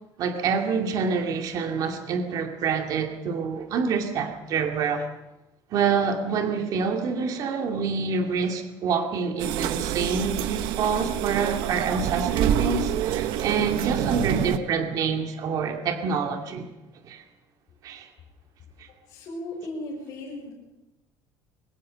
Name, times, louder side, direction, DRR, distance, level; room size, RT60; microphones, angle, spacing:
voice 1, 0.2-5.1 5.7-16.7 17.0-17.2 17.8-18.1, right 5 dB, 45° right, 4 dB, 2.4 m, -27 dB
sound 1, 9.4-14.6, right 10 dB, 75° right, 1.3 m, -27 dB
voice 2, 19.1-20.5, left 1 dB, 45° left, -4 dB, 6.6 m, -36 dB
23.0 x 21.0 x 6.5 m, 1.0 s
cardioid pair, 170°, 8 cm